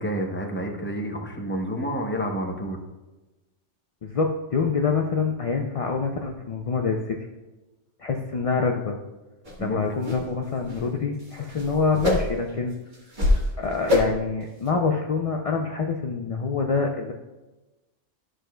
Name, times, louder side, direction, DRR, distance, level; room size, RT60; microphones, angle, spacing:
voice 1, 0.0-2.8 9.6-9.8, equal, 10° left, 1 dB, 0.7 m, -29 dB
voice 2, 4.0-7.2 8.0-9.0 9.6-12.7 13.6-17.1, left 4 dB, 50° left, 2 dB, 0.4 m, -26 dB
sound 1, 9.5-9.6 10.0-10.2 10.6-10.8 11.2-12.5 12.9-13.5 13.9-14.3 14.7-14.8, left 2 dB, 40° right, 1.5 m, -24 dB
12.5 x 6.2 x 2.3 m, 1.1 s
omnidirectional pair, 1.2 m